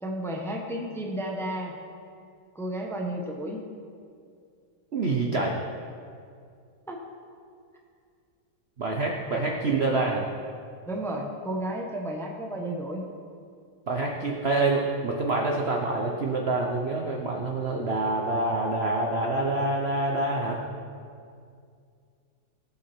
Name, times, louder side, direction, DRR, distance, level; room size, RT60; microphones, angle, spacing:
voice 1, 0.0-1.7 2.5-3.6 6.9-7.0 10.9-13.0, right 1 dB, ahead, 0 dB, 0.8 m, -32 dB
voice 2, 4.9-5.6 8.8-10.3 13.9-20.6, right 2 dB, 60° right, 1 dB, 0.6 m, -26 dB
18.5 x 7.8 x 4.5 m, 2.3 s
omnidirectional pair, 2.4 m